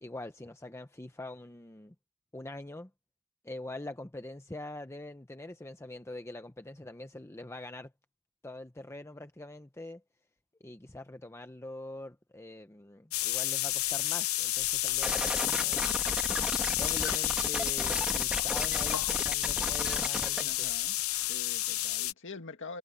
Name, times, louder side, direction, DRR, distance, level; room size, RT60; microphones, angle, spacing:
voice 1, 0.0-1.9 2.3-2.9 3.4-7.9 8.4-10.0 10.6-16.0 16.7-20.7, left 1 dB, 15° left, 0.8 m, -44 dB
sound 1, 13.1-22.1, left 15 dB, 90° left, 0.8 m, -30 dB
sound 2, 15.0-20.4, right 1 dB, 5° right, 1.5 m, -35 dB
voice 2, 20.3-22.8, left 3 dB, 60° left, 2.0 m, -45 dB
head